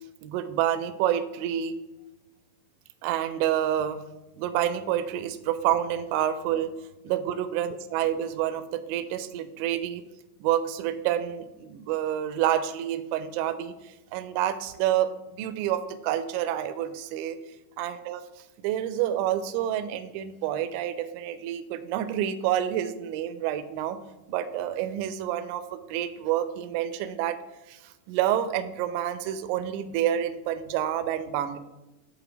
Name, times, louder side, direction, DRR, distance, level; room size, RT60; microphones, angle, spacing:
voice 1, 0.2-1.7 3.0-4.0 4.4-6.7 7.0-10.0 10.4-15.1 15.4-17.4 17.8-18.2 18.6-24.0 24.3-27.4 27.7-31.6, right 11 dB, 50° right, 12 dB, 0.4 m, -28 dB
8.0 x 2.8 x 6.0 m, 1.0 s
figure-of-eight pair, 90°, 0 cm